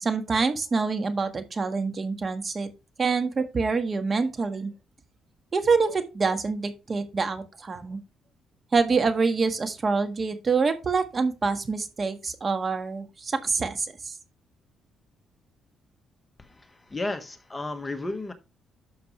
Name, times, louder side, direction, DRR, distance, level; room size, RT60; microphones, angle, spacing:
voice 1, 0.0-2.7 3.0-4.7 5.5-8.0 8.7-14.1, right 4 dB, 35° right, 1.6 m, -26 dB
voice 2, 16.4-18.3, left 2 dB, 20° left, 1.4 m, -33 dB
11.5 x 6.5 x 3.2 m
cardioid pair, 90°, 0 cm